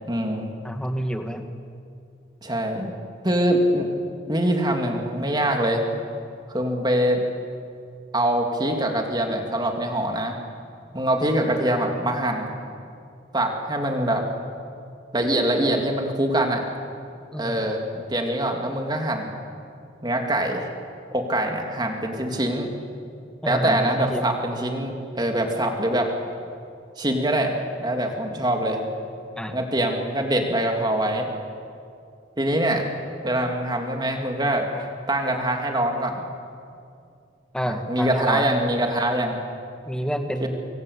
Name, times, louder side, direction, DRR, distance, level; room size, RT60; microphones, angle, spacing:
voice 1, 0.1-0.5 2.4-2.9 3.2-3.9 4.3-5.8 6.5-7.2 8.1-10.4 10.9-12.5 13.3-14.2 15.1-16.6 17.4-19.3 20.0-20.7 21.1-22.7 23.4-26.1 27.0-27.5 27.8-28.8 29.5-31.3 32.4-32.9 33.2-36.2 37.7-39.4 40.4-40.5, right 1 dB, 25° right, 2 dB, 3.2 m, -24 dB
voice 2, 0.6-1.4 17.3-17.5 23.4-24.3 29.4-29.6 37.5-38.5 39.9-40.5, equal, 5° left, 5 dB, 1.9 m, -28 dB
26.5 x 23.5 x 8.7 m, 2.4 s
head